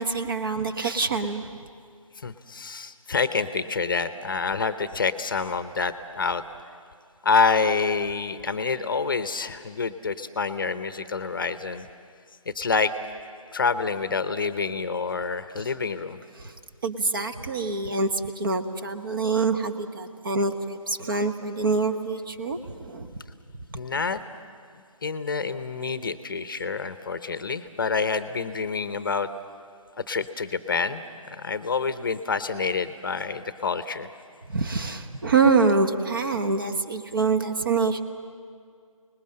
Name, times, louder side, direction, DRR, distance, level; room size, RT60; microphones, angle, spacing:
voice 1, 0.0-1.5 15.6-15.7 16.4-16.5 16.8-23.2 23.7-23.8 34.5-38.0, right 4 dB, 40° right, 7 dB, 1.2 m, -25 dB
voice 2, 2.2-6.4 7.2-11.9 12.5-12.9 13.5-16.2 23.7-24.2 25.0-29.3 30.1-34.1, left 4 dB, 35° left, 12 dB, 0.8 m, -27 dB
27.0 x 20.0 x 7.7 m, 2.2 s
figure-of-eight pair, 160°, 18 cm